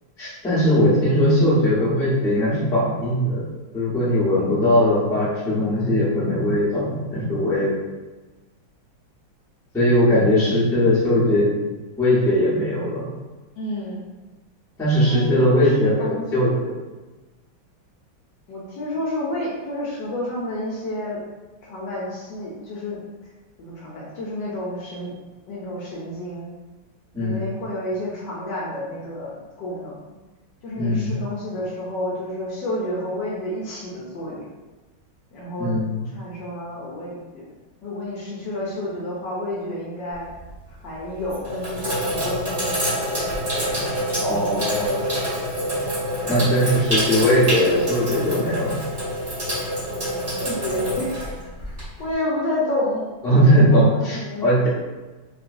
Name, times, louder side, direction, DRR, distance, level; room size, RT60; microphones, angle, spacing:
voice 1, 0.2-3.4 3.7-7.7 9.7-11.5 12.0-13.1 14.8-16.7 27.1-27.5 30.8-31.1 35.6-36.0 44.2-45.0 46.3-48.8 53.2-54.7, equal, 5° left, -10 dB, 0.3 m, -19 dB
voice 2, 7.2-7.5 13.6-14.1 15.0-16.5 18.5-21.2 21.6-23.0 23.6-25.1 25.5-26.5 27.2-30.0 30.6-34.4 35.3-35.8 36.1-37.4 37.8-40.3 40.7-42.8 43.6-44.8 50.4-51.1 52.0-53.1 53.4-54.6, left 1 dB, 75° left, -5 dB, 1.1 m, -30 dB
Sink (filling or washing), 40.1-40.6 41.2-52.1, equal, 30° right, 1.0 m, -26 dB
3.0 x 2.9 x 2.5 m, 1.2 s
omnidirectional pair, 2.4 m